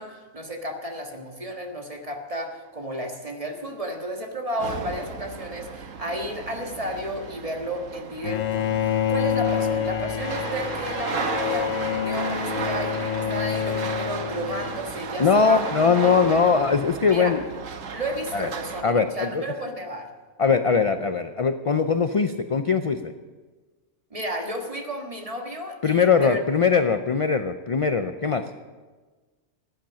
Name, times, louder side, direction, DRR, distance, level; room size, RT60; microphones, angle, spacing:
voice 1, 0.0-15.6 15.9-16.4 17.0-17.3 17.9-20.1 24.1-26.4, equal, 25° right, 2 dB, 1.7 m, -33 dB
sound 1, 4.6-18.8, right 5 dB, 90° right, 1.4 m, -34 dB
Bowed string instrument, 8.2-15.0, left 9 dB, 80° left, 1.2 m, -27 dB
voice 2, 15.2-17.4 18.3-18.5 18.8-19.4 20.4-23.1 25.8-28.4, left 5 dB, 50° left, 9 dB, 0.4 m, -21 dB
15.5 x 10.5 x 6.2 m, 1.3 s
omnidirectional pair, 1.3 m